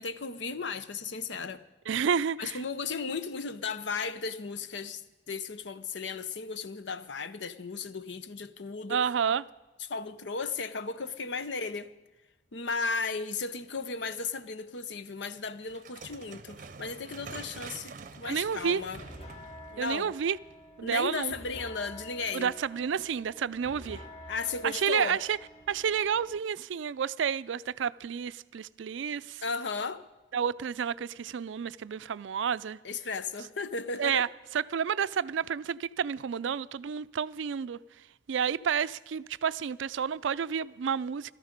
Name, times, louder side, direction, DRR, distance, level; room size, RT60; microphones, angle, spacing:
voice 1, 0.0-1.6 2.4-5.0 5.3-9.0 9.9-11.9 12.5-19.0 19.7-20.1 20.8-22.5 24.3-25.2 29.4-30.0 32.8-34.3, left 4 dB, 70° left, 0.7 m, -35 dB
voice 2, 1.9-2.6 8.9-9.4 18.2-18.8 19.8-20.4 20.8-21.3 22.3-24.1 24.6-25.4 25.7-29.4 30.3-32.8 34.0-37.8 38.3-41.3, right 7 dB, 85° right, 0.4 m, -30 dB
sound 1, 15.7-20.8, right 4 dB, 45° right, 0.7 m, -47 dB
sound 2, 18.8-26.4, equal, 35° left, 1.8 m, -49 dB
16.0 x 13.5 x 5.2 m
head